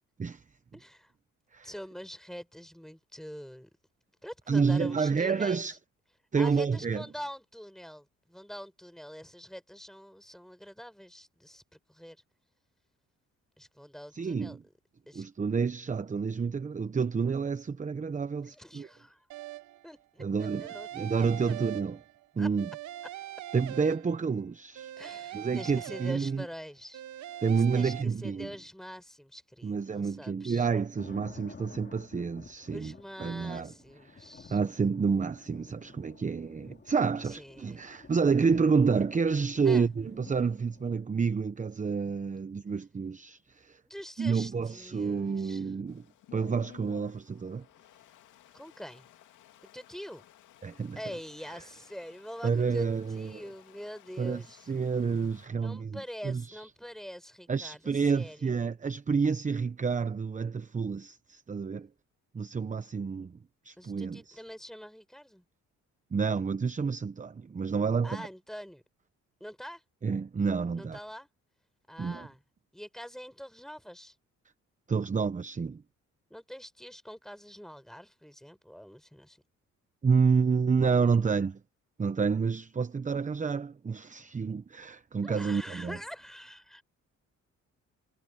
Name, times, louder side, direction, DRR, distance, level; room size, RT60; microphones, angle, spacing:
voice 1, 0.7-1.1 1.6-3.7 4.2-5.8 6.3-12.2 13.6-14.6 15.1-15.2 18.4-19.3 19.8-20.9 21.4-21.5 22.4-22.5 25.0-27.0 27.5-30.7 32.7-34.6 37.2-37.8 39.6-39.9 43.8-45.7 48.5-49.1 49.7-50.2 51.0-54.7 55.5-58.7 63.8-65.4 68.0-68.8 69.4-69.8 70.8-71.3 71.9-72.4 72.7-74.2 76.3-79.4 85.2-86.8, equal, ahead, 4.4 m, -45 dB
voice 2, 4.5-5.8 6.3-7.0 14.1-14.6 15.1-18.9 20.2-20.7 20.9-22.0 22.4-22.7 23.5-24.9 25.3-26.4 27.4-28.5 29.6-32.9 33.2-33.7 34.1-34.2 34.5-43.8 44.2-46.0 46.3-47.6 50.6-51.0 52.4-53.4 54.2-54.4 54.7-56.6 57.5-61.9 62.3-63.3 63.6-64.4 66.1-68.2 70.0-71.0 72.0-72.3 74.9-75.8 80.0-81.6 82.0-86.0, right 5 dB, 25° right, 0.9 m, -29 dB
sound 1, 19.3-19.9 20.4-22.2 22.6-24.4 24.7-26.5 26.9-28.0, right 13 dB, 70° right, 0.9 m, -42 dB
sound 2, 31.0-41.0, left 5 dB, 35° left, 2.4 m, -52 dB
Stream, 45.9-55.5, left 13 dB, 85° left, 2.6 m, -56 dB
cardioid pair, 90°, 30 cm